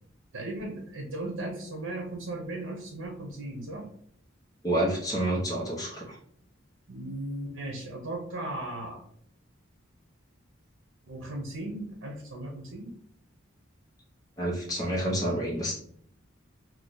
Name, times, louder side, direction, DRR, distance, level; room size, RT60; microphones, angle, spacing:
voice 1, 0.3-3.8 6.9-9.0 11.1-12.9, right 1 dB, 80° right, 0 dB, 0.8 m, -37 dB
voice 2, 4.6-6.2 14.4-15.7, right 1 dB, 20° left, -4 dB, 0.8 m, -28 dB
3.0 x 2.3 x 3.8 m, 0.62 s
head